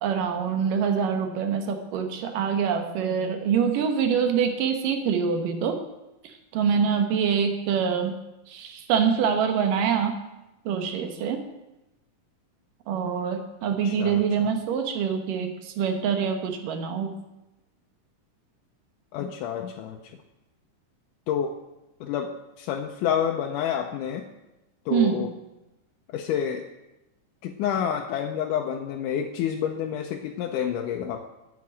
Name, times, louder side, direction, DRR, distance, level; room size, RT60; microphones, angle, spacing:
voice 1, 0.0-5.8 6.2-8.2 8.5-10.2 10.7-11.4 12.9-17.1 24.9-25.2, right 7 dB, 80° right, 5 dB, 2.8 m, -25 dB
voice 2, 13.8-14.2 19.1-20.0 21.3-21.5 22.0-22.3 22.6-24.2 24.9-25.3 26.1-26.6 27.4-31.2, left 8 dB, 80° left, 2 dB, 2.2 m, -28 dB
9.3 x 7.5 x 8.4 m, 0.97 s
omnidirectional pair, 3.8 m